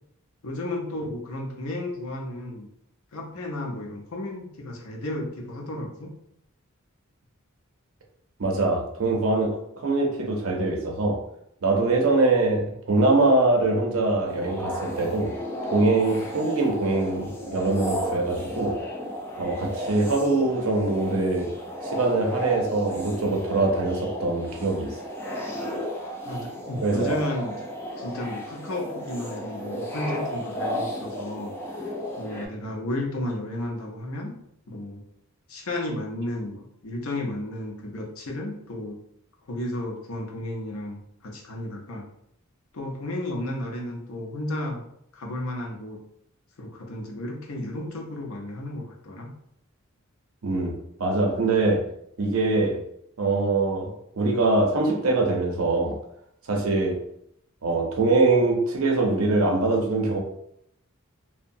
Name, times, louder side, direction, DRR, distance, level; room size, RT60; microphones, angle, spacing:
voice 1, 0.4-2.7 3.1-6.1 26.2-27.6 28.0-31.5 32.2-34.4 34.7-35.0 35.5-39.0 39.4-42.1 42.7-44.8 45.1-46.0 46.6-49.3, left 1 dB, 80° left, 0 dB, 0.6 m, -33 dB
voice 2, 8.4-11.2 11.6-15.3 15.7-18.8 19.4-21.5 21.8-25.0 26.8-27.2 50.4-51.8 52.2-52.8 53.2-56.0 56.5-57.0 57.6-60.2, right 2 dB, 70° right, 1 dB, 0.6 m, -23 dB
sound 1, 14.3-32.5, equal, 10° left, 0.4 m, -34 dB
2.8 x 2.1 x 2.6 m, 0.73 s
head